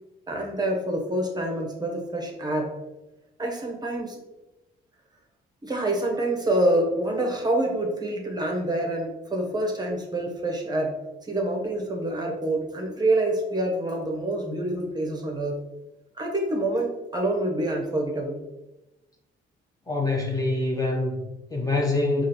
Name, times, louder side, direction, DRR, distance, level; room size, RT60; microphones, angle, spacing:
voice 1, 0.3-2.7 3.4-4.2 5.6-11.0 11.3-15.6 16.2-18.4, right 1 dB, 20° right, 1 dB, 0.8 m, -26 dB
voice 2, 19.9-22.3, left 2 dB, 15° left, -1 dB, 0.7 m, -25 dB
4.9 x 2.5 x 2.8 m, 1.0 s
cardioid pair, 90°, 20 cm